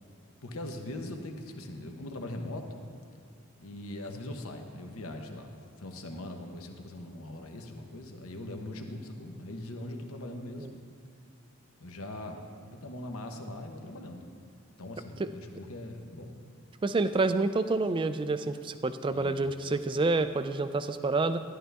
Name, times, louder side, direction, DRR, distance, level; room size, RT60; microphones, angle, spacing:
voice 1, 0.4-2.8 3.6-5.5 5.8-10.8 11.8-12.4 12.6-14.3 14.8-16.4 19.1-19.7, left 1 dB, 75° left, 4 dB, 1.0 m, -41 dB
voice 2, 16.8-21.4, right 3 dB, 20° right, 11 dB, 0.3 m, -28 dB
13.0 x 11.0 x 3.4 m, 2.3 s
head